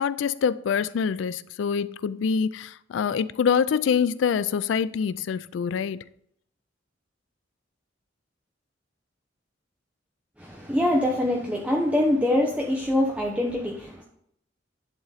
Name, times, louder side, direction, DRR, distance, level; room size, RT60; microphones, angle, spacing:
voice 1, 0.0-6.0, left 6 dB, 80° left, 0.3 m, -25 dB
voice 2, 10.4-14.0, left 1 dB, 5° right, 0.8 m, -24 dB
11.0 x 3.9 x 4.0 m
head